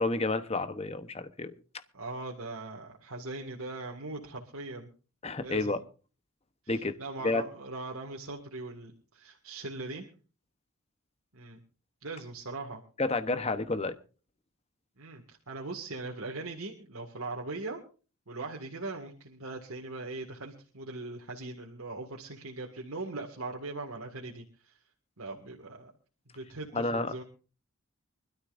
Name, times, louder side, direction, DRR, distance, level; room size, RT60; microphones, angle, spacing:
voice 1, 0.0-1.5 5.2-5.8 6.7-6.9 7.2-7.4 13.0-14.0 26.7-27.1, left 3 dB, 30° left, 10 dB, 0.9 m, -30 dB
voice 2, 1.9-4.9 5.4-5.8 6.6-10.1 11.3-11.6 12.0-12.8 15.0-17.8 18.3-24.7 25.2-25.9 26.3-27.2, right 2 dB, 85° right, 0 dB, 2.0 m, -40 dB
24.5 x 13.0 x 2.6 m, 0.36 s
head